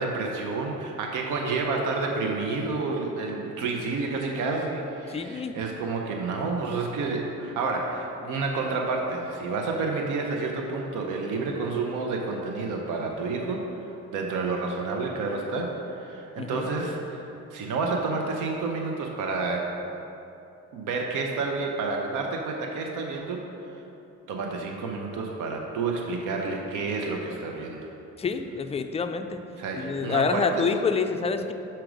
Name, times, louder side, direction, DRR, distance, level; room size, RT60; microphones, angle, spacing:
voice 1, 0.0-19.7 20.7-23.4 23.7-23.8 24.3-27.9 29.6-30.7, right 3 dB, 85° right, 1 dB, 0.7 m, -30 dB
voice 2, 5.1-5.6 16.4-16.7 28.2-29.4 29.7-31.5, left 5 dB, 20° left, 7 dB, 0.4 m, -27 dB
6.0 x 4.5 x 5.1 m, 2.9 s
cardioid pair, 90°, 30 cm